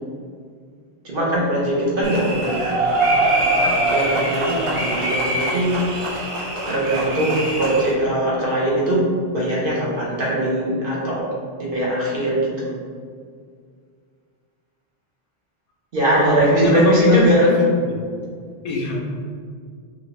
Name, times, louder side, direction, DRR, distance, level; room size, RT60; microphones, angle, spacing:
voice 1, 1.0-2.8 3.0-5.8 6.7-11.3 11.6-12.7 15.9-17.5, right 1 dB, 60° right, -6 dB, 1.1 m, -21 dB
sound 1, 2.0-7.9, right 1 dB, 35° right, 0.7 m, -22 dB
voice 2, 16.1-18.0 18.6-19.0, left 2 dB, 65° left, -1 dB, 0.7 m, -24 dB
3.3 x 2.5 x 3.1 m, 2.1 s
omnidirectional pair, 1.1 m